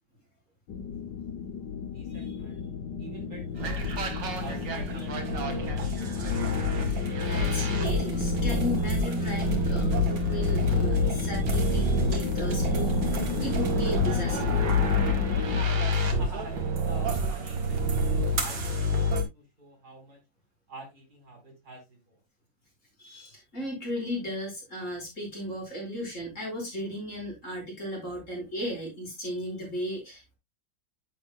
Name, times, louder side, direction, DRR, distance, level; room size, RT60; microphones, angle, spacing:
sound 1, 0.7-15.6, left 4 dB, 70° left, 1.4 m, -32 dB
voice 1, 1.9-3.9 4.4-5.8 15.5-15.7 16.2-20.2 20.7-22.2, right 1 dB, 55° right, 5.1 m, -46 dB
sound 2, 3.6-19.2, left 1 dB, 75° right, 2.5 m, -28 dB
voice 2, 6.8-14.6 23.0-30.4, left 1 dB, 40° left, 5.4 m, -35 dB
10.5 x 8.8 x 2.2 m
omnidirectional pair, 2.0 m